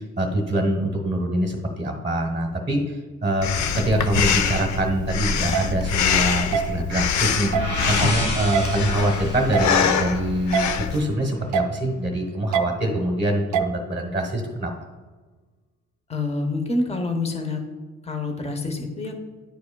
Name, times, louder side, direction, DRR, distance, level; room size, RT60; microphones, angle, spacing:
voice 1, 0.0-14.7, right 1 dB, 20° right, 1 dB, 1.1 m, -24 dB
Breathing, 3.4-11.0, left 7 dB, 70° left, 0.6 m, -24 dB
sound 1, 5.5-5.6 6.5-6.6 7.5-7.7 8.5-8.6 9.5-9.7 10.5-10.7 11.5-11.7 12.5-12.7 13.5-13.7, right 8 dB, 70° right, 0.6 m, -22 dB
sound 2, 7.1-10.9, left 1 dB, 85° left, 1.9 m, -31 dB
voice 2, 16.1-17.6 18.0-19.1, left 2 dB, 20° left, 4 dB, 1.0 m, -27 dB
10.5 x 4.8 x 2.3 m, 1.4 s
cardioid pair, 90°, 30 cm